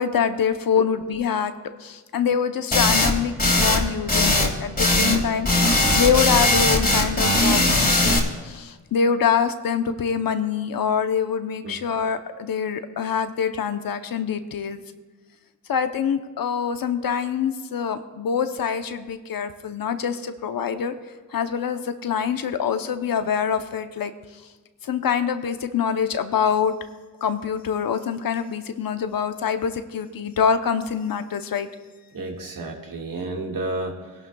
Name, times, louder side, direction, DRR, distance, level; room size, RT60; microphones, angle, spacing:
voice 1, 0.0-1.5 1.8-8.2 8.4-14.8 15.7-20.9 21.3-24.1 24.8-26.7 27.2-31.7, left 7 dB, 65° left, 9 dB, 0.9 m, -25 dB
sound 1, 2.7-3.1 3.4-3.8 4.1-5.2 5.4-8.2, left 2 dB, 25° left, 2.4 m, -19 dB
voice 2, 32.1-34.3, right 2 dB, 65° right, 1 dB, 1.9 m, -31 dB
21.5 x 11.5 x 2.3 m, 1.3 s
cardioid pair, 60°, 37 cm